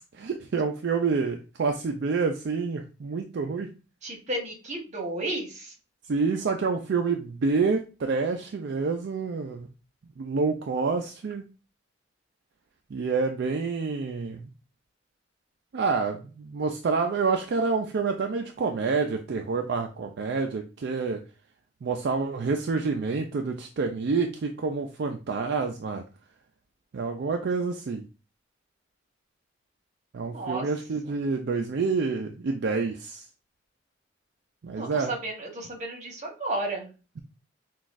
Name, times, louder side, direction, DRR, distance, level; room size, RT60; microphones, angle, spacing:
voice 1, 0.1-3.7 6.1-9.7 10.2-11.5 12.9-14.5 15.7-21.2 21.8-26.0 26.9-28.0 30.1-33.2 34.6-35.1, right 4 dB, 65° right, 4 dB, 0.4 m, -28 dB
voice 2, 4.0-5.7 30.3-30.7 34.7-36.9, right 2 dB, 40° right, 0 dB, 1.3 m, -33 dB
5.9 x 2.3 x 2.5 m, 0.32 s
head